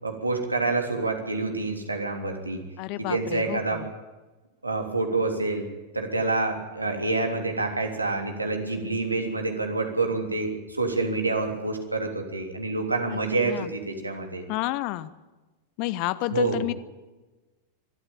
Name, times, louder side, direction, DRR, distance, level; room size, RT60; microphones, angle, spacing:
voice 1, 0.0-2.6 3.0-3.8 4.6-5.6 5.9-14.4 16.3-16.6, right 3 dB, 80° right, 4 dB, 3.3 m, -27 dB
voice 2, 2.8-3.9 13.1-13.2 13.4-13.7 14.5-15.1 15.8-16.7, left 16 dB, 45° left, 16 dB, 1.0 m, -30 dB
23.5 x 13.5 x 9.0 m, 1.2 s
figure-of-eight pair, 90°, 0 cm